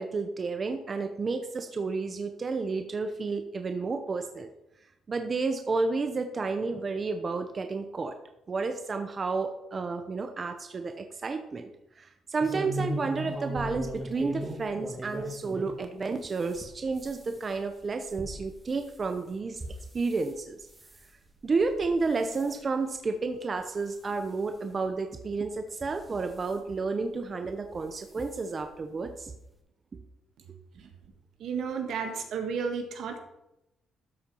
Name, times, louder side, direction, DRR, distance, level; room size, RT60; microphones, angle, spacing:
voice 1, 0.0-4.5 5.1-8.1 8.5-11.7 12.0-19.6 19.9-20.7 21.4-29.3, right 4 dB, 35° right, 6 dB, 0.8 m, -31 dB
sound 1, 12.4-15.7 16.2-20.3 20.7-21.1 21.6-21.9 22.2-22.5 23.1-23.2 23.6-23.7 24.8-24.9 25.7-26.5 27.6-27.8 28.2-28.3 28.6-28.7, right 1 dB, 20° right, 1.8 m, -38 dB
voice 2, 31.4-33.2, right 6 dB, 75° right, 4 dB, 1.5 m, -32 dB
13.0 x 4.3 x 5.5 m, 0.90 s
cardioid pair, 90°, 0 cm